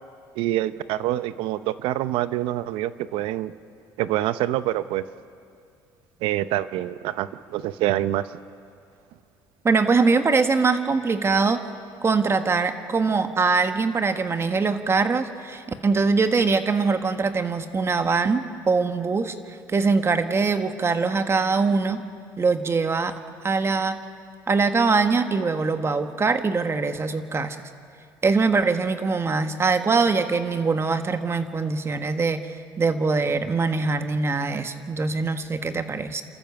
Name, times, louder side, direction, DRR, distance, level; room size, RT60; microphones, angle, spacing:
voice 1, 0.4-3.5 4.0-5.0 6.2-8.2, right 14 dB, 75° right, 14 dB, 0.7 m, -26 dB
voice 2, 9.6-11.6 12.0-19.3 19.7-22.0 22.4-23.1 23.4-24.0 24.5-27.6 28.2-32.4 32.8-36.2, right 4 dB, 30° right, 8 dB, 1.4 m, -22 dB
29.5 x 14.0 x 7.1 m, 2.4 s
supercardioid pair, 85°, 9 cm